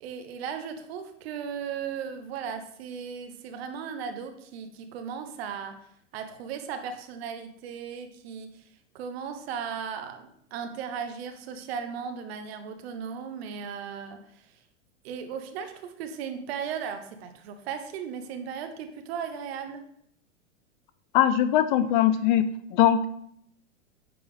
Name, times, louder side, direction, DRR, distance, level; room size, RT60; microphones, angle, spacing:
voice 1, 0.0-5.9 6.1-8.7 8.9-14.6 15.0-19.8, right 7 dB, 55° right, 8 dB, 1.0 m, -36 dB
voice 2, 21.1-22.4 22.7-23.1, left 10 dB, 40° left, 12 dB, 0.4 m, -21 dB
9.3 x 3.4 x 3.5 m, 0.70 s
hypercardioid pair, 100°, 38 cm